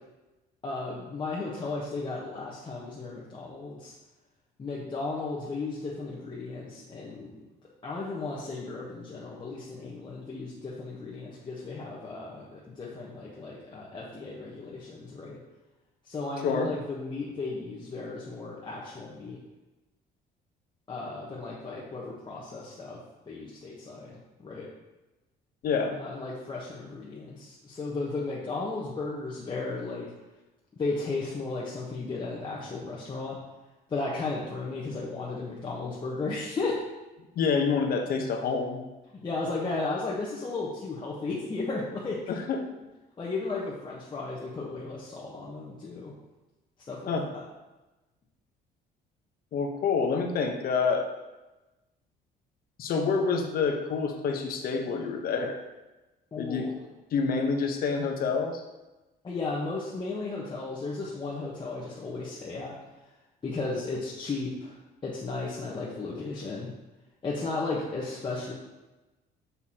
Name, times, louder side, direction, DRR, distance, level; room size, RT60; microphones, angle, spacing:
voice 1, 0.6-4.0 4.6-7.4 7.8-15.4 16.0-19.4 20.9-23.0 23.3-24.7 26.0-30.1 30.8-33.4 33.9-36.8 39.2-42.2 43.2-46.1 46.9-47.4 56.3-56.7 59.2-62.8 63.4-66.7 67.2-68.5, left 3 dB, 25° left, -6 dB, 1.2 m, -35 dB
voice 2, 16.4-16.7 25.6-25.9 37.4-38.8 42.3-42.7 47.1-47.3 49.5-51.1 52.8-55.6 56.4-56.7 57.1-58.6, left 5 dB, 60° left, 3 dB, 1.0 m, -27 dB
6.8 x 6.5 x 2.9 m, 1.1 s
cardioid pair, 110°, 17 cm